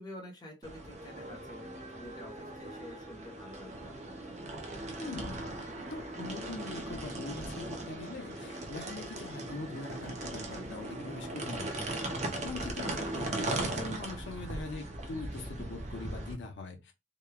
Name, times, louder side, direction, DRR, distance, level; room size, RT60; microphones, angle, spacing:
voice 1, 0.0-1.7 1.9-4.2, left 1 dB, 20° left, 0.7 m, -48 dB
sound 1, 0.6-16.3, right 2 dB, 35° right, 0.5 m, -39 dB
voice 2, 5.0-5.6 5.9-12.1 12.4-16.9, left 3 dB, 65° left, 0.6 m, -42 dB
2.9 x 2.1 x 2.2 m
head